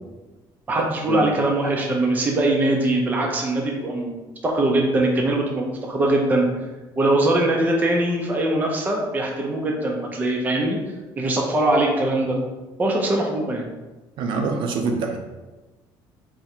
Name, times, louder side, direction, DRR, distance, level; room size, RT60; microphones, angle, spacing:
voice 1, 0.7-6.5 7.0-10.8 11.2-12.4 12.8-13.6, right 1 dB, 20° right, 0 dB, 0.5 m, -22 dB
voice 2, 14.2-15.2, right 4 dB, 60° right, 4 dB, 0.6 m, -24 dB
3.7 x 2.1 x 4.3 m, 1.2 s
cardioid pair, 150°, 9 cm